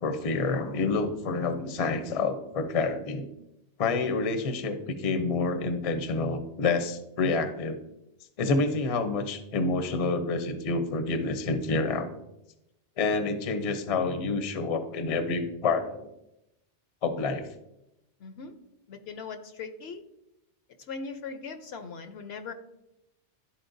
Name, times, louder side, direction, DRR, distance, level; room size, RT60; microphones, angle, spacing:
voice 1, 0.0-3.3 3.8-7.8 8.4-12.1 13.0-16.1 17.0-17.4, left 3 dB, 40° left, 7 dB, 0.6 m, -28 dB
voice 2, 18.2-18.5 18.9-20.0 20.8-22.5, left 5 dB, 65° left, 7 dB, 0.8 m, -39 dB
11.5 x 4.3 x 2.6 m, 0.87 s
omnidirectional pair, 1.2 m